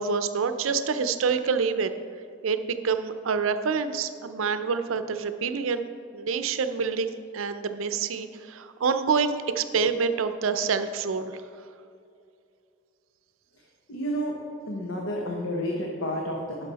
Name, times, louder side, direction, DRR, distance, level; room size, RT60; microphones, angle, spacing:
voice 1, 0.0-1.9 2.4-11.4, right 5 dB, 90° right, 10 dB, 0.5 m, -27 dB
voice 2, 13.9-14.4 14.7-16.7, equal, 80° left, 0 dB, 0.9 m, -30 dB
11.0 x 5.8 x 4.0 m, 2.5 s
head